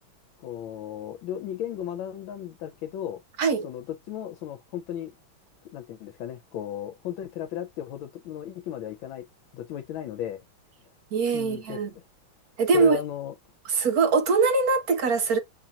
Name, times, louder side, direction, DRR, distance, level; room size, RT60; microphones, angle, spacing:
voice 1, 0.4-3.2 3.6-5.1 5.7-9.3 9.5-10.4 11.3-12.0 12.7-13.3, left 10 dB, 80° left, 1.4 m, -35 dB
voice 2, 11.1-11.9 12.6-13.0 13.6-15.4, right 4 dB, 60° right, 1.1 m, -22 dB
7.3 x 2.9 x 2.4 m
omnidirectional pair, 2.2 m